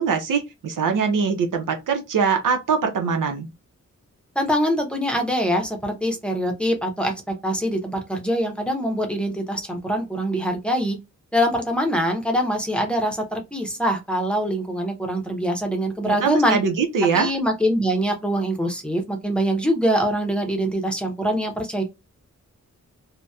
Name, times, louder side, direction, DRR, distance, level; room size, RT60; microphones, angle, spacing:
voice 1, 0.0-3.5 16.0-17.3, right 5 dB, 90° right, 0.6 m, -22 dB
voice 2, 4.4-7.1 7.4-11.0 11.3-16.6 17.1-21.8, equal, 5° left, 0.7 m, -23 dB
2.8 x 2.1 x 2.3 m
wide cardioid pair, 90°, 31 cm